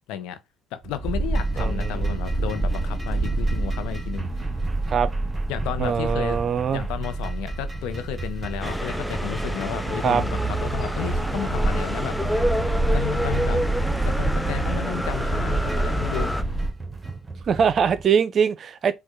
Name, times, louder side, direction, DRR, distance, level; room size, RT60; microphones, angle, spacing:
voice 1, 0.1-0.4 0.7-4.5 5.5-6.4 6.7-12.6 12.9-13.6 14.0-16.3, left 10 dB, 75° left, 0.7 m, -33 dB
sound 1, 0.8-18.0, right 3 dB, 25° right, 1.0 m, -38 dB
sound 2, 1.0-16.7, right 2 dB, 20° left, 2.5 m, -27 dB
voice 2, 1.6-2.2 4.9-5.1 5.8-6.8 10.0-10.2 17.5-18.9, right 7 dB, 50° right, 0.5 m, -22 dB
sound 3, 8.6-16.4, equal, ahead, 0.5 m, -29 dB
5.2 x 2.3 x 3.7 m
supercardioid pair, 65°, 0 cm